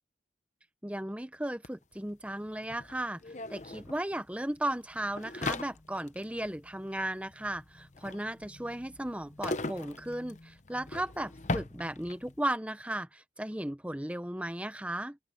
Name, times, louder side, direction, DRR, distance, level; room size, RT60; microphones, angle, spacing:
voice 1, 0.8-3.2 3.5-15.2, right 1 dB, 5° right, 0.9 m, -35 dB
sound 1, 1.6-1.7 1.9-12.4, left 2 dB, 40° left, 0.9 m, -40 dB
open air
head